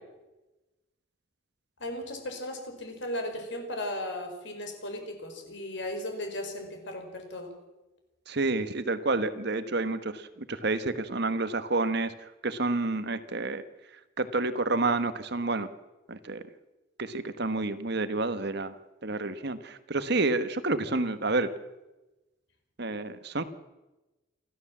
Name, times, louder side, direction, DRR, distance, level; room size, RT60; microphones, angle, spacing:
voice 1, 1.8-7.5, left 1 dB, 60° left, 5 dB, 5.0 m, -36 dB
voice 2, 8.3-13.6 14.2-15.7 16.1-16.4 17.0-18.8 19.0-21.5 22.8-23.4, right 3 dB, 55° right, 12 dB, 1.3 m, -29 dB
28.0 x 13.0 x 7.4 m, 1.1 s
head